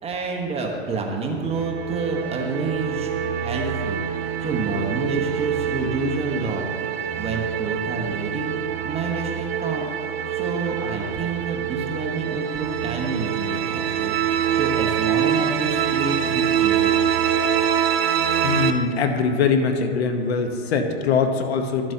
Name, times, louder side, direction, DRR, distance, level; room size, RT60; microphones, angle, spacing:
voice 1, 0.0-3.1 3.4-6.7 7.2-8.5 8.8-9.9 10.3-17.0, right 3 dB, 20° right, 1 dB, 1.0 m, -29 dB
sound 1, 1.3-18.7, right 8 dB, 65° right, 0.7 m, -25 dB
voice 2, 18.4-21.9, left 5 dB, 70° left, 6 dB, 1.0 m, -22 dB
12.0 x 7.4 x 2.8 m, 2.4 s
hypercardioid pair, 110°, 32 cm